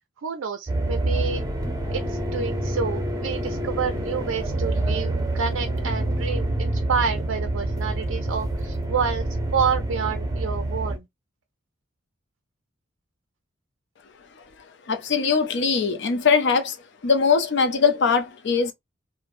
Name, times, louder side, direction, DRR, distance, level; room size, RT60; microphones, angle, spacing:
voice 1, 0.2-1.4 1.9-9.2 9.5-11.0, right 6 dB, 80° right, 0.4 m, -28 dB
sound 1, 0.7-11.0, right 1 dB, 20° right, 0.6 m, -27 dB
voice 2, 14.9-16.8 17.0-18.7, left 5 dB, 60° left, 0.5 m, -21 dB
3.1 x 2.1 x 2.5 m
head